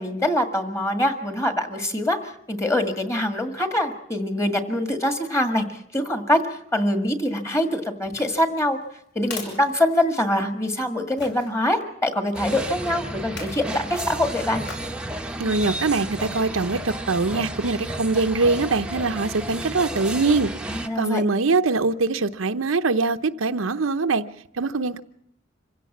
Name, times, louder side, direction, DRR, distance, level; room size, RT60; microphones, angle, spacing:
voice 1, 0.0-6.4 6.7-8.8 9.2-14.6 20.7-21.3, left 1 dB, 15° left, 1.9 m, -24 dB
sound 1, 8.0-10.5 11.2-11.5 13.2-13.7 14.6-15.0 15.5-15.6, left 4 dB, 60° left, 6.2 m, -40 dB
sound 2, 12.3-20.9, right 1 dB, 5° right, 0.9 m, -32 dB
voice 2, 15.4-20.5 21.0-24.2 24.6-25.0, right 3 dB, 80° right, 0.8 m, -23 dB
26.0 x 16.0 x 7.3 m
head